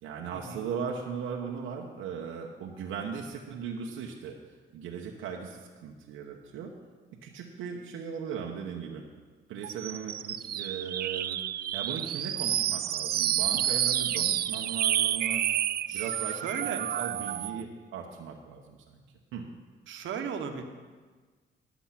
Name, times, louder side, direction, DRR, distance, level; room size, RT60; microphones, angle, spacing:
voice 1, 0.0-4.4 4.7-6.7 7.2-9.0 9.5-15.4 15.9-19.0 19.3-19.4, right 6 dB, 90° right, 0 dB, 1.0 m, -38 dB
sound 1, 9.6-17.6, right 11 dB, 50° right, 0.4 m, -29 dB
voice 2, 15.9-16.8 19.9-20.6, right 7 dB, 75° right, 5 dB, 1.2 m, -36 dB
12.0 x 7.1 x 5.8 m, 1.4 s
cardioid pair, 90°, 20 cm